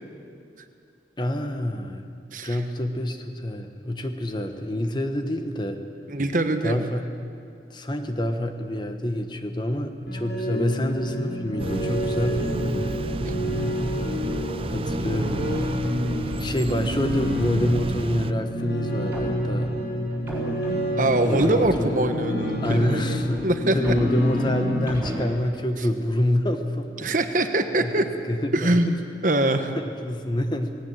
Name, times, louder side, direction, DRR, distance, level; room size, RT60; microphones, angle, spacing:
voice 1, 1.2-2.1 2.4-5.8 6.6-7.1 7.7-12.9 14.7-15.6 16.2-19.7 21.2-27.1 27.8-27.9 28.2-29.0 29.8-30.8, left 1 dB, 25° left, 6 dB, 1.2 m, -27 dB
voice 2, 6.1-6.9 13.2-13.3 21.0-23.8 27.0-28.1 28.5-28.9 29.2-29.7, right 2 dB, 45° right, 7 dB, 1.3 m, -23 dB
sound 1, 10.1-24.8, equal, 80° left, 4.6 m, -28 dB
sound 2, 11.6-18.3, right 2 dB, 30° right, 0.4 m, -31 dB
sound 3, 18.9-22.2 22.6-25.3, equal, 10° right, 3.9 m, -36 dB
18.5 x 17.5 x 9.0 m, 2.5 s
head